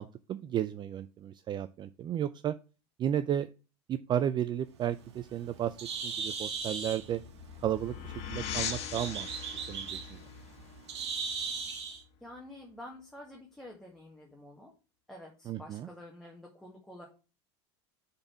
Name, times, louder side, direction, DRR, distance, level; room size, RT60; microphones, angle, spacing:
voice 1, 0.0-2.6 3.0-3.5 3.9-7.2 7.6-10.2 15.5-15.9, right 10 dB, 35° right, 13 dB, 0.4 m, -33 dB
Bird, 4.7-12.0, right 5 dB, 85° right, 1.5 m, -39 dB
sound 1, 6.6-12.0, left 8 dB, 50° left, 1.8 m, -41 dB
voice 2, 12.2-14.7 15.1-17.0, left 1 dB, 5° left, -1 dB, 1.7 m, -49 dB
6.5 x 4.2 x 5.9 m, 0.33 s
supercardioid pair, 105°, 14 cm